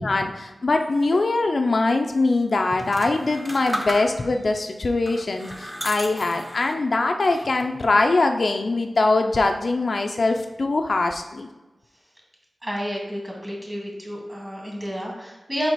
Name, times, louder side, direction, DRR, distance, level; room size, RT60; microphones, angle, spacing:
voice 1, 0.0-11.5, left 3 dB, 60° left, 4 dB, 0.4 m, -22 dB
sound 1, 2.7-4.4 5.0-6.8 7.2-7.8, equal, 5° right, 0.8 m, -34 dB
voice 2, 12.6-15.7, equal, 20° right, -2 dB, 2.0 m, -31 dB
5.0 x 4.6 x 4.1 m, 1.1 s
wide cardioid pair, 75°, 0 cm